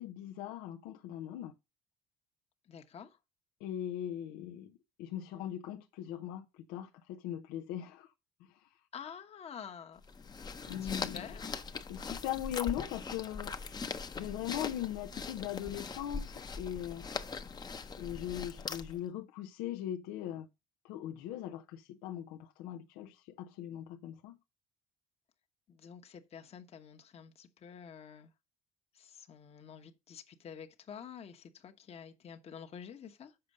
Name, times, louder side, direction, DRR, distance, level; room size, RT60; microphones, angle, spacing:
voice 1, 0.0-1.5 3.6-8.1 8.5-8.6 10.7-11.3 11.9-13.5 14.2-17.1 18.0-20.5 20.8-24.4, left 11 dB, 90° left, 0.6 m, -40 dB
voice 2, 2.7-3.2 8.9-10.0 10.8-11.4 25.7-28.3 28.9-33.3, left 7 dB, 45° left, 1.1 m, -49 dB
sound 1, 10.0-19.0, left 4 dB, 25° left, 0.7 m, -41 dB
6.8 x 5.1 x 6.5 m
cardioid pair, 100°, 15 cm